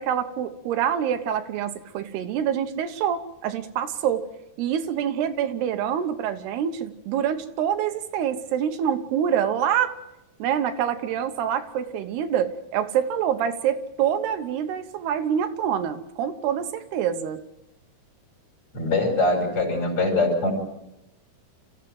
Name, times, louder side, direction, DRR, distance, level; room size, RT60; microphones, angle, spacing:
voice 1, 0.0-4.2 4.6-9.9 10.4-17.4, right 9 dB, 85° right, 7 dB, 3.2 m, -26 dB
voice 2, 18.7-20.5, left 2 dB, 35° left, 1 dB, 5.8 m, -22 dB
27.0 x 15.0 x 7.7 m, 0.90 s
omnidirectional pair, 4.6 m